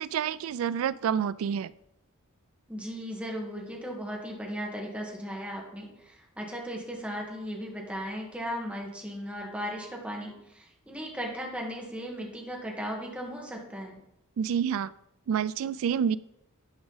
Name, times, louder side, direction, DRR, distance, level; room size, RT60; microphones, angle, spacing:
voice 1, 0.0-1.7 14.4-14.9 15.3-16.2, right 8 dB, 65° right, 19 dB, 0.3 m, -28 dB
voice 2, 2.7-14.0, equal, 5° right, -1 dB, 1.5 m, -37 dB
11.5 x 5.0 x 4.0 m, 0.81 s
head